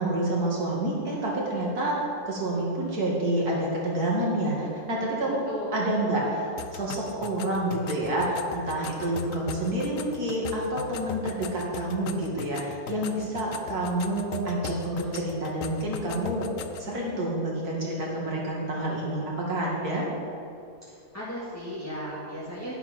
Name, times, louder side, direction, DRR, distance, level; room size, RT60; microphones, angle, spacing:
voice 1, 0.0-5.4 5.7-16.5 16.8-20.1, right 1 dB, 65° right, -3 dB, 2.9 m, -28 dB
voice 2, 5.3-5.8 21.1-22.7, equal, 10° left, -9 dB, 2.0 m, -36 dB
sound 1, 6.6-16.9, left 7 dB, 65° left, 0.9 m, -39 dB
11.0 x 11.0 x 4.5 m, 2.5 s
omnidirectional pair, 1.8 m